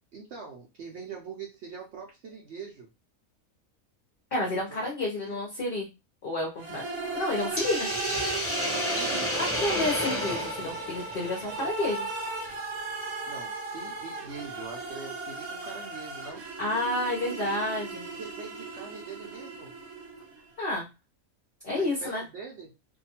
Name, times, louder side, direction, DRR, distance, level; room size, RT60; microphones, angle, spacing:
voice 1, 0.1-2.9 4.7-5.4 8.6-9.3 13.3-16.5 18.1-19.7 21.7-22.7, right 5 dB, 60° right, 0 dB, 0.8 m, -43 dB
voice 2, 4.3-5.9 6.2-6.8 7.1-7.9 9.4-12.1 16.6-18.0 20.6-20.9 21.6-22.2, left 2 dB, 50° left, -2 dB, 0.8 m, -30 dB
sound 1, 6.6-20.4, right 3 dB, 80° right, 1.2 m, -36 dB
Hiss, 7.6-11.8, left 1 dB, 20° left, 0.4 m, -31 dB
2.6 x 2.2 x 2.8 m, 0.25 s
omnidirectional pair, 1.5 m